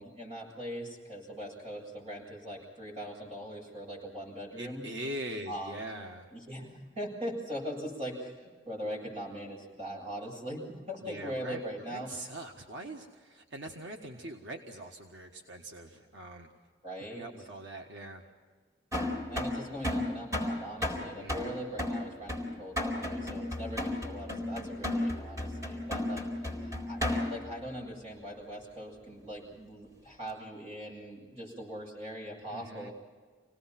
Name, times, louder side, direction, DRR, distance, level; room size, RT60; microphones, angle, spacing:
voice 1, 0.0-4.9 5.5-5.7 6.3-12.1 16.8-17.3 19.3-26.3 26.6-32.9, equal, 35° right, 0 dB, 7.8 m, -41 dB
voice 2, 4.6-6.3 11.0-11.6 11.9-16.5 17.1-18.3 21.2-21.7 32.5-32.9, right 1 dB, 85° right, 2 dB, 1.6 m, -42 dB
sound 1, 18.9-27.5, left 1 dB, 20° right, 4.2 m, -33 dB
27.5 x 18.5 x 6.0 m, 1.5 s
head